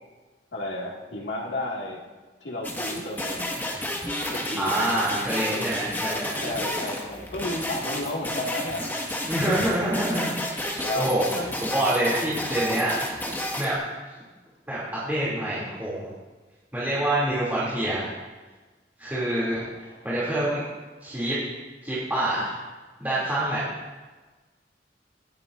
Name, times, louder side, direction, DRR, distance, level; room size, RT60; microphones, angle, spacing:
voice 1, 0.5-2.0 2.4-3.6 4.3-4.9 6.4-9.1 10.8-11.1 11.3-11.6 19.4-20.1, left 1 dB, 90° left, -2 dB, 2.2 m, -33 dB
sound 1, 2.6-13.7, left 1 dB, 10° left, 1.7 m, -31 dB
voice 2, 4.6-6.5 9.3-13.1 13.6-13.8 14.7-16.1 16.7-18.1 19.0-19.6 20.0-20.6 21.0-21.4 21.8-22.5 23.0-23.6, right 1 dB, 10° right, -9 dB, 2.9 m, -26 dB
26.0 x 9.6 x 2.6 m, 1.3 s
head